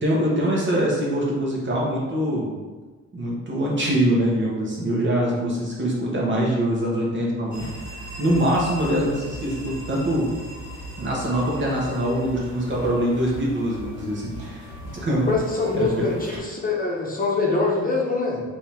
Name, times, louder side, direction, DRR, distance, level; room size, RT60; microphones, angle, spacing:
voice 1, 0.0-2.5 3.1-7.7 8.2-10.3 11.0-14.7 15.0-15.3 15.7-16.1, right 1 dB, 40° right, -4 dB, 1.3 m, -23 dB
sound 1, 7.5-16.4, right 1 dB, 70° right, 1.2 m, -38 dB
voice 2, 15.1-18.4, left 3 dB, 30° left, -3 dB, 0.9 m, -24 dB
5.3 x 2.9 x 3.5 m, 1.3 s
cardioid pair, 125°, 29 cm